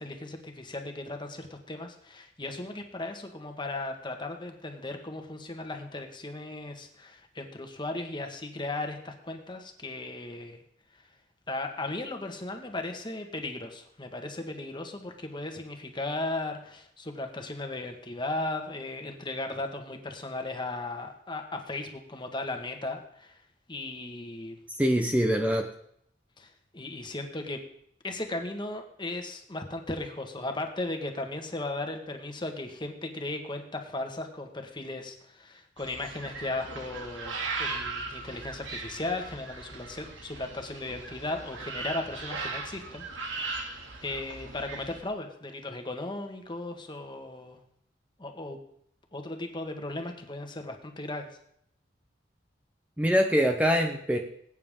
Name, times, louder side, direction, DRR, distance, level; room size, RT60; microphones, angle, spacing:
voice 1, 0.0-10.6 10.9-11.0 11.5-23.4 23.7-24.6 26.4-27.6 28.0-43.7 44.0-47.6 48.2-48.6 49.1-51.4, left 2 dB, 25° left, 4 dB, 1.6 m, -36 dB
voice 2, 24.8-25.7 53.0-54.2, equal, 10° right, 4 dB, 0.8 m, -24 dB
sound 1, 35.8-45.0, right 3 dB, 85° right, 2.3 m, -38 dB
20.5 x 9.4 x 3.7 m, 0.70 s
head